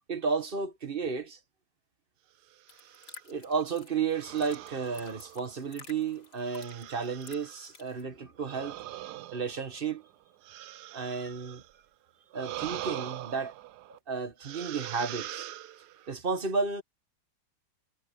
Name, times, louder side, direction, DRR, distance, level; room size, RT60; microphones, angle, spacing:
voice 1, 0.1-1.4 3.3-8.8 9.3-10.0 10.9-11.6 12.3-13.5 13.9-15.5 16.1-16.8, right 5 dB, 30° right, 1.4 m, -32 dB
sound 1, 2.5-3.2 4.1-5.8 6.4-7.7 8.4-11.8 12.3-14.0 14.4-16.1, right 14 dB, 70° right, 1.1 m, -43 dB
sound 2, 2.7-8.0, left 3 dB, 60° left, 3.5 m, -53 dB
omnidirectional pair, 2.0 m